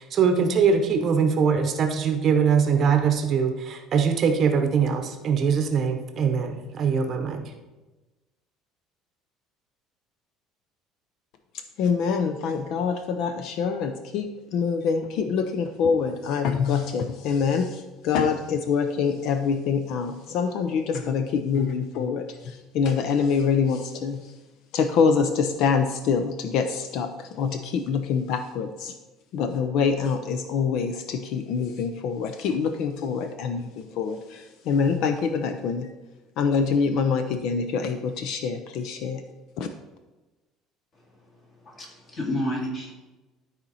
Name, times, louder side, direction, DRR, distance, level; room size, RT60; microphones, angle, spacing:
voice 1, 0.0-7.4, right 6 dB, 40° right, 6 dB, 0.8 m, -22 dB
voice 2, 11.8-24.3 24.7-28.9 29.3-35.9 36.4-39.2 39.6-39.7, left 6 dB, 60° left, 7 dB, 0.5 m, -25 dB
voice 3, 41.6-42.9, left 1 dB, 35° left, -1 dB, 2.2 m, -30 dB
12.5 x 4.3 x 4.1 m, 1.1 s
cardioid pair, 150°, 0 cm